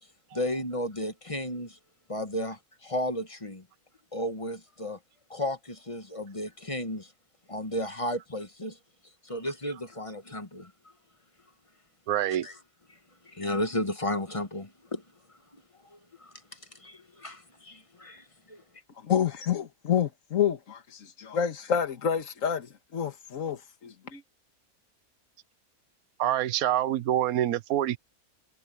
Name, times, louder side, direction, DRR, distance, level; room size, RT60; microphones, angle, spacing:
voice 1, 0.3-1.8 2.1-3.6 4.1-5.0 5.3-7.1 7.5-8.8 9.2-10.7 12.4-12.5 13.2-15.0 15.9-16.3 16.7-18.6, left 1 dB, 25° left, 1.3 m, -33 dB
voice 2, 12.1-12.5 26.2-28.0, right 12 dB, 75° right, 1.3 m, -26 dB
voice 3, 19.1-22.7 22.9-24.2, left 8 dB, 60° left, 1.9 m, -28 dB
omnidirectional pair, 1.6 m